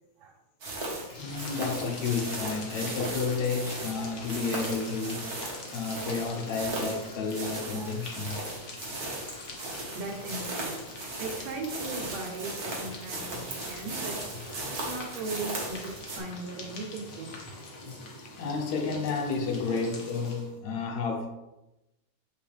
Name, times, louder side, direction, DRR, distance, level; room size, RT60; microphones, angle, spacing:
sound 1, 0.6-16.2, right 2 dB, 45° right, 1.4 m, -37 dB
sound 2, 0.9-20.6, left 2 dB, 90° left, 0.7 m, -44 dB
voice 1, 1.2-8.4 18.4-21.3, left 4 dB, 75° left, 2 dB, 2.2 m, -31 dB
voice 2, 4.0-4.3 7.8-8.0 9.6-10.8 11.2-14.2 14.7-17.6 19.7-19.8, right 3 dB, 70° right, 2 dB, 2.1 m, -38 dB
7.5 x 5.5 x 3.4 m, 0.97 s
omnidirectional pair, 3.4 m